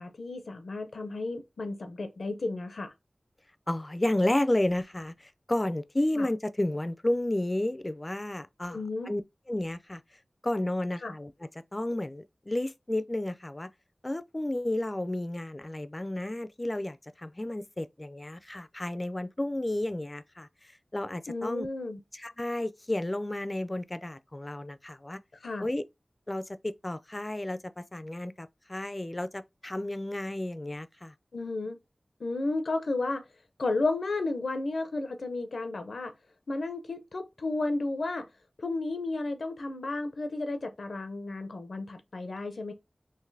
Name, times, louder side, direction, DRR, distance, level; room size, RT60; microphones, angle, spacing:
voice 1, 0.0-2.9 6.1-6.3 8.7-9.1 11.0-11.1 21.3-22.0 25.4-25.7 31.3-31.8 32.2-33.2 33.6-36.1 36.5-38.3 38.6-42.7, left 2 dB, 85° left, 0.5 m, -33 dB
voice 2, 3.7-8.8 9.0-9.2 9.5-10.0 10.4-11.3 11.7-13.7 14.0-20.5 20.9-21.7 22.1-25.2 25.6-25.8 26.3-31.1, left 1 dB, 30° left, 0.3 m, -32 dB
3.9 x 2.5 x 2.6 m
wide cardioid pair, 50°, 0 cm